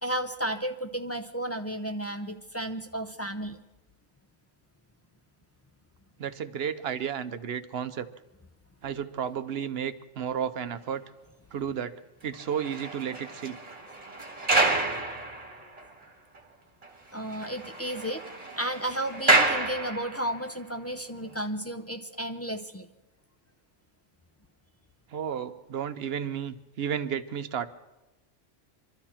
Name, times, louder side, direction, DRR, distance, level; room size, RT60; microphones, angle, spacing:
voice 1, 0.0-3.6 17.1-18.2 18.6-22.9, right 1 dB, 20° left, 5 dB, 0.5 m, -33 dB
voice 2, 6.2-8.1 8.8-11.0 11.5-11.9 12.2-13.8 25.1-27.7, right 8 dB, 60° right, 11 dB, 0.9 m, -32 dB
sound 1, 12.3-16.0 16.4-16.5 16.8-16.9 17.2-20.5 21.1-21.3, right 2 dB, 30° right, 1.6 m, -29 dB
25.5 x 12.5 x 4.4 m, 0.97 s
omnidirectional pair, 1.3 m